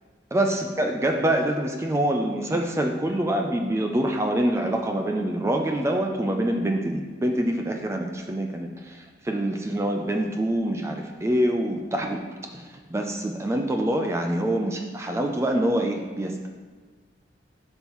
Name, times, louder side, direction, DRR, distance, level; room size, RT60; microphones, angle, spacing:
voice 1, 0.3-12.3 12.5-12.6 12.9-16.5, right 1 dB, 15° right, 3 dB, 0.4 m, -25 dB
7.6 x 5.4 x 3.0 m, 1.5 s
head